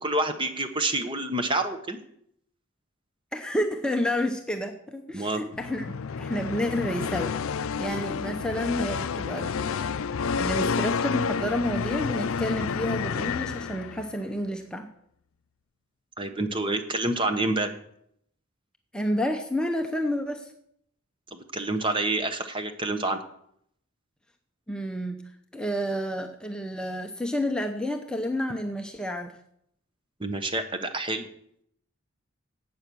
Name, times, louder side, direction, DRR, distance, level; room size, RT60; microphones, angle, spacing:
voice 1, 0.0-2.0 5.1-5.4 16.2-17.7 21.3-23.2 30.2-31.3, right 2 dB, 25° right, 8 dB, 1.0 m, -28 dB
voice 2, 3.3-7.3 7.8-9.9 10.4-14.9 18.9-20.5 24.7-25.2 25.5-29.3, equal, 5° left, 3 dB, 0.7 m, -30 dB
sound 1, 5.5-14.2, left 5 dB, 70° left, 0.5 m, -30 dB
12.0 x 8.6 x 6.2 m, 0.71 s
head